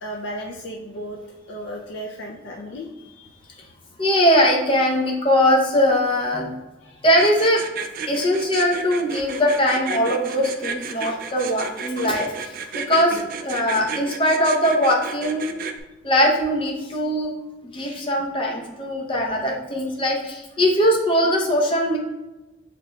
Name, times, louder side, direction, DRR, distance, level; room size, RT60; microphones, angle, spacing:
voice 1, 0.0-1.2 1.5-3.6 6.8-7.0 13.1-13.3, equal, 75° left, 0 dB, 0.4 m, -35 dB
voice 2, 4.0-6.5 7.0-7.6 8.1-15.6 16.0-17.3 17.6-22.0, equal, 30° left, -1 dB, 0.7 m, -21 dB
sound 1, 7.2-15.8, right 5 dB, 50° right, 0.3 m, -32 dB
6.3 x 3.6 x 2.3 m, 1.1 s
head